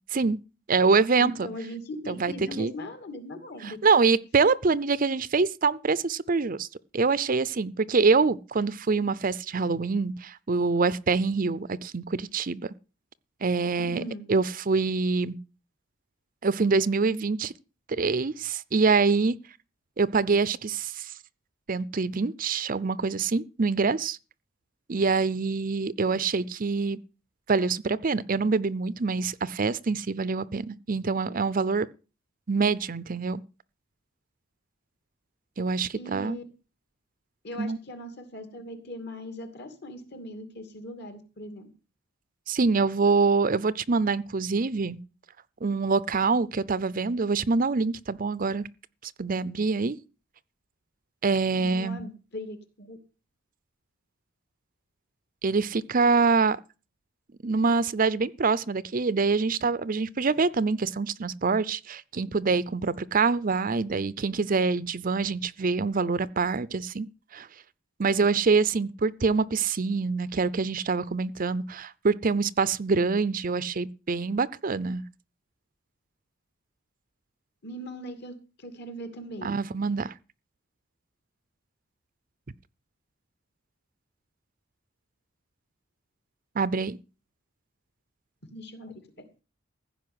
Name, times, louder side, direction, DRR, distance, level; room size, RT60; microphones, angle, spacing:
voice 1, 0.7-1.5 2.1-2.7 3.6-6.7 6.9-12.7 13.4-14.0 14.3-15.3 16.4-17.5 17.9-19.4 20.0-21.1 21.7-24.2 24.9-27.0 27.5-31.9 32.5-33.4 35.6-36.4 37.6-37.8 42.5-45.0 45.6-48.7 49.0-50.0 51.2-52.0 55.4-56.6 57.4-67.1 67.3-67.5 68.0-75.0 79.4-80.1 86.6-87.0, right 4 dB, 40° right, 0.6 m, -25 dB
voice 2, 1.2-3.8 13.8-14.3 36.0-36.4 37.4-41.7 51.5-53.0 77.6-79.5 88.5-89.0, equal, 55° left, 2.6 m, -39 dB
15.5 x 5.4 x 9.6 m
head